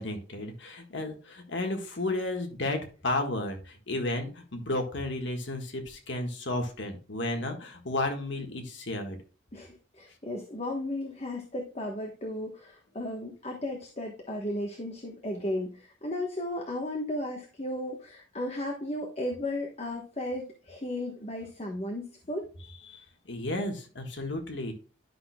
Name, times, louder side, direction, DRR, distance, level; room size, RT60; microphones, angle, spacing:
voice 1, 0.0-9.2 22.9-24.7, left 2 dB, 60° left, 4 dB, 1.6 m, -33 dB
voice 2, 9.5-22.5, left 1 dB, 30° left, 1 dB, 1.2 m, -35 dB
11.0 x 6.0 x 2.3 m, 0.36 s
head